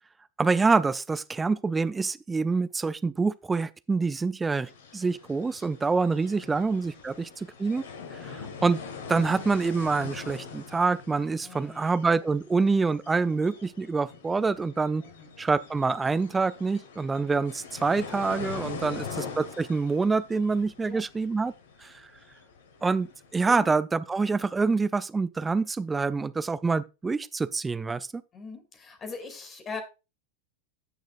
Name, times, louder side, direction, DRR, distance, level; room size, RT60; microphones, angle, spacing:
voice 1, 0.4-7.8 8.1-8.8 9.1-15.0 15.4-21.5 21.8-21.9 22.8-28.2, right 4 dB, 10° right, 0.5 m, -26 dB
sound 1, 4.7-23.6, left 5 dB, 60° left, 1.5 m, -43 dB
voice 2, 11.4-12.0 15.0-15.3 20.8-21.0 23.4-23.7 28.3-29.8, left 4 dB, 25° left, 2.5 m, -42 dB
16.5 x 6.4 x 2.4 m
figure-of-eight pair, 90°, 0 cm